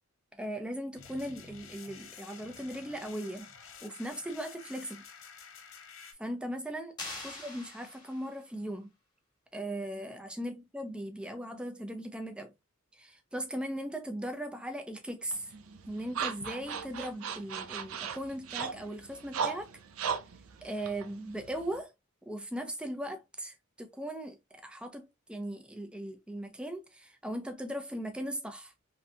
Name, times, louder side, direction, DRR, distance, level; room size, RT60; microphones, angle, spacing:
voice 1, 0.4-3.5 3.8-5.1 6.2-7.0 7.2-8.9 9.5-12.5 12.9-15.5 15.9-19.7 20.6-21.9 22.3-28.7, right 1 dB, 5° right, 0.4 m, -38 dB
sound 1, 1.0-6.1, left 6 dB, 65° left, 0.6 m, -50 dB
sound 2, 7.0-8.5, left 2 dB, 20° left, 1.1 m, -43 dB
sound 3, 15.3-21.8, right 6 dB, 75° right, 0.5 m, -38 dB
3.2 x 2.7 x 2.4 m
head